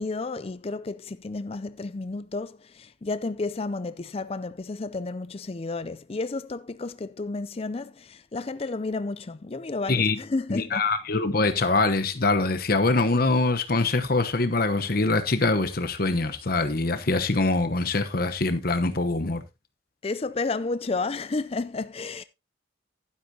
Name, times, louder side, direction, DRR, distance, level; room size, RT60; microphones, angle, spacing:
voice 1, 0.0-10.8 20.0-22.2, left 3 dB, 30° left, 0.4 m, -31 dB
voice 2, 10.5-19.4, left 3 dB, 50° left, 1.1 m, -24 dB
11.5 x 10.0 x 2.8 m
head